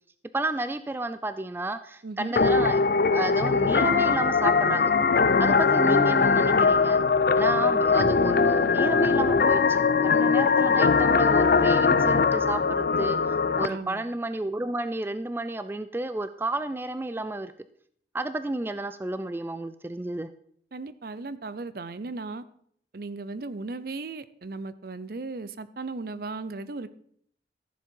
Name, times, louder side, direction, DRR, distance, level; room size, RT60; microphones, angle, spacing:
voice 1, 0.3-2.8 3.1-4.9 5.4-7.0 7.4-17.5 18.1-20.3, right 2 dB, 10° right, 11 dB, 0.3 m, -31 dB
voice 2, 2.0-2.4 13.7-14.0 20.7-22.4 22.9-26.9, right 3 dB, 55° right, 15 dB, 0.6 m, -36 dB
sound 1, 2.4-13.7, left 5 dB, 55° left, 0.5 m, -21 dB
14.5 x 7.3 x 4.5 m, 0.64 s
head